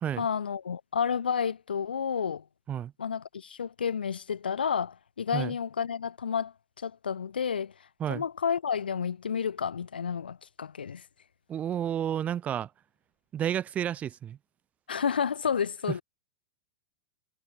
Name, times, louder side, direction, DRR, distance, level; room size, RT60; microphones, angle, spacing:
voice 1, 0.2-2.4 3.0-7.7 8.1-11.0 14.9-16.0, left 7 dB, 80° left, 0.9 m, -31 dB
voice 2, 11.5-12.7 13.3-14.4, right 10 dB, 30° right, 0.7 m, -31 dB
figure-of-eight pair, 95°, 5 cm